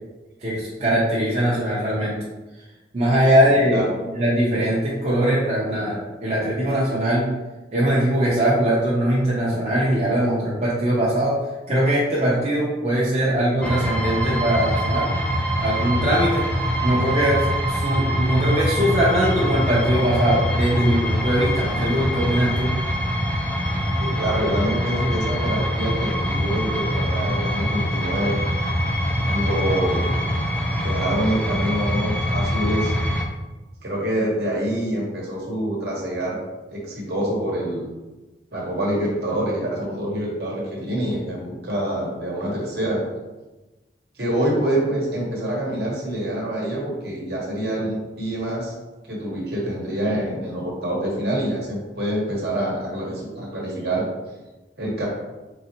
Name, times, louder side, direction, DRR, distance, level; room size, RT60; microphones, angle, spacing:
voice 1, 0.4-2.2 2.9-3.8 4.1-7.3 7.7-11.4 11.7-15.1 15.6-16.4 16.8-22.7, right 1 dB, 35° right, -7 dB, 0.8 m, -21 dB
voice 2, 3.5-3.9 24.0-28.4 29.2-30.1 30.8-32.9 33.8-36.4 36.7-37.9 38.5-43.1 44.2-48.7 49.0-54.0 54.8-55.1, right 1 dB, 60° right, -3 dB, 1.2 m, -26 dB
sound 1, 13.6-33.3, equal, 5° left, 0.4 m, -24 dB
3.9 x 3.8 x 2.9 m, 1.1 s
head